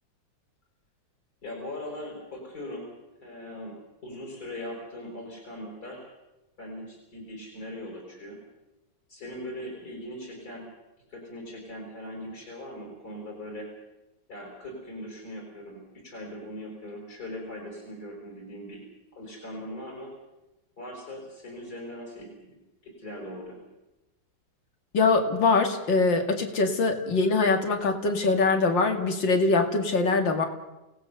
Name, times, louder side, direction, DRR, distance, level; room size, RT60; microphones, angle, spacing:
voice 1, 1.4-2.9 3.2-3.8 4.0-6.1 6.6-8.4 9.1-10.6 11.1-13.7 14.3-18.8 19.1-20.1 20.8-22.5 22.8-23.6, left 1 dB, 50° left, 0 dB, 5.8 m, -40 dB
voice 2, 24.9-30.4, left 3 dB, 75° left, 6 dB, 3.0 m, -23 dB
28.5 x 18.5 x 6.9 m, 0.98 s
omnidirectional pair, 2.0 m